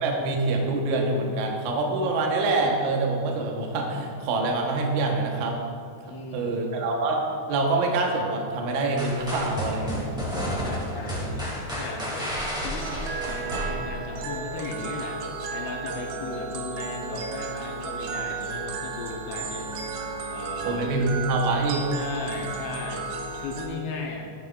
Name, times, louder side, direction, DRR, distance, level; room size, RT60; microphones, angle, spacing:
voice 1, 0.0-5.6 6.3-7.2 7.5-10.1 10.6-10.7 11.1-11.3 20.6-21.9, right 2 dB, 75° right, 0 dB, 1.8 m, -25 dB
voice 2, 6.0-6.7 10.6-12.3 12.6-12.9 13.3-15.2 15.5-19.9 20.3-20.9 21.9-24.3, left 3 dB, 75° left, 0 dB, 2.8 m, -36 dB
sound 1, 9.0-14.2, equal, 5° right, 0.3 m, -31 dB
sound 2, 12.8-23.7, right 4 dB, 90° right, 2.9 m, -34 dB
13.0 x 9.1 x 2.4 m, 2.3 s
omnidirectional pair, 4.9 m